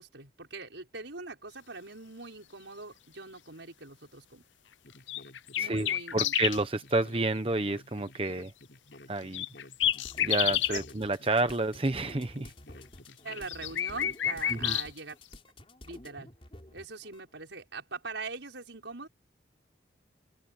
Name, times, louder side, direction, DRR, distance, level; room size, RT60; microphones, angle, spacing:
voice 1, 0.0-4.4 5.5-6.3 10.7-10.8 13.2-15.2 15.8-16.3 16.7-19.1, right 3 dB, 80° right, 5.9 m, -42 dB
sound 1, 4.8-14.8, left 1 dB, 65° left, 5.7 m, -53 dB
sound 2, 5.1-6.6 9.3-10.8 13.1-14.9, left 11 dB, 85° left, 0.7 m, -29 dB
voice 2, 5.6-8.5 9.1-9.4 10.2-12.5 14.5-14.8, right 2 dB, 30° right, 0.8 m, -30 dB
sound 3, 9.8-17.2, left 1 dB, 30° left, 4.9 m, -50 dB
open air
head